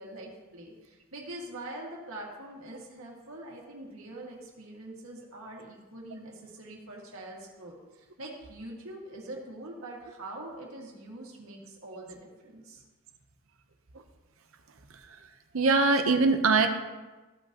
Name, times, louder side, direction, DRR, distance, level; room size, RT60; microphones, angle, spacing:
voice 1, 0.0-12.8, right 1 dB, 90° right, -2 dB, 2.1 m, -44 dB
voice 2, 15.5-16.7, right 3 dB, 70° right, 6 dB, 0.8 m, -22 dB
14.5 x 5.3 x 3.0 m, 1.2 s
head